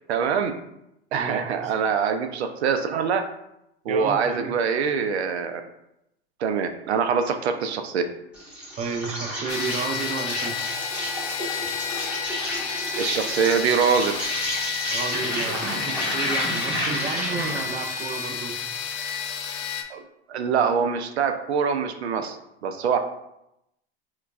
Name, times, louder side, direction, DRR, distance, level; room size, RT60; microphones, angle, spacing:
voice 1, 0.1-0.5 1.1-3.2 3.9-5.6 6.4-8.0 13.0-14.2 19.9-20.0 20.3-22.4 22.6-23.0, right 6 dB, 80° right, 7 dB, 0.5 m, -24 dB
voice 2, 1.1-1.7 3.9-4.5 8.8-10.6 14.9-18.6, right 5 dB, 20° right, 5 dB, 0.4 m, -32 dB
Insect, 8.3-17.7, equal, 5° right, 1.3 m, -31 dB
sound 1, 9.5-19.8, left 7 dB, 50° left, 0.5 m, -31 dB
4.4 x 2.3 x 2.3 m, 0.83 s
hypercardioid pair, 90°, 32 cm